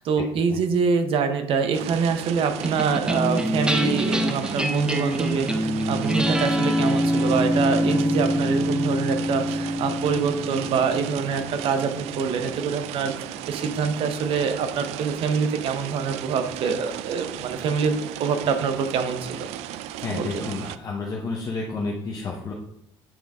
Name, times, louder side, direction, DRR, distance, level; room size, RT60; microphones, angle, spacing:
voice 1, 0.0-17.9 18.2-19.5 20.1-20.3, right 5 dB, 60° right, 7 dB, 0.9 m, -25 dB
sound 1, 1.7-20.8, right 12 dB, 85° right, 0.4 m, -35 dB
sound 2, 2.6-13.2, equal, 10° right, 0.6 m, -25 dB
voice 2, 20.0-22.5, left 3 dB, 35° left, -2 dB, 1.0 m, -30 dB
8.9 x 3.9 x 3.5 m, 0.73 s
cardioid pair, 125°, 11 cm